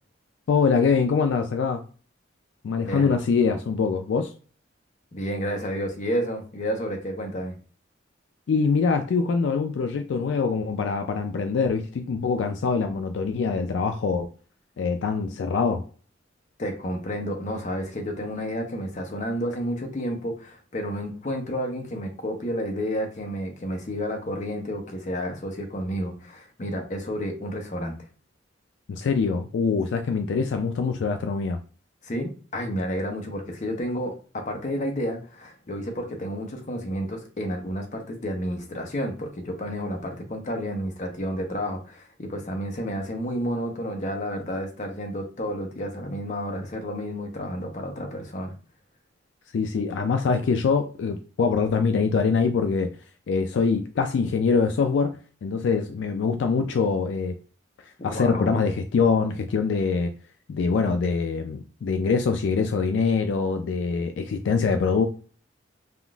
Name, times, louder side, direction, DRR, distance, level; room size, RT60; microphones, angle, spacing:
voice 1, 0.5-1.8 2.6-4.3 8.5-14.3 14.8-15.8 28.9-31.6 49.5-53.0 53.3-55.1 55.4-57.4 58.0-60.1 60.5-65.1, left 5 dB, 70° left, 6 dB, 0.3 m, -24 dB
voice 2, 2.8-3.1 5.1-7.6 16.6-27.9 32.0-48.5 58.0-58.6, equal, 40° left, 3 dB, 0.7 m, -31 dB
3.6 x 2.4 x 2.3 m, 0.39 s
head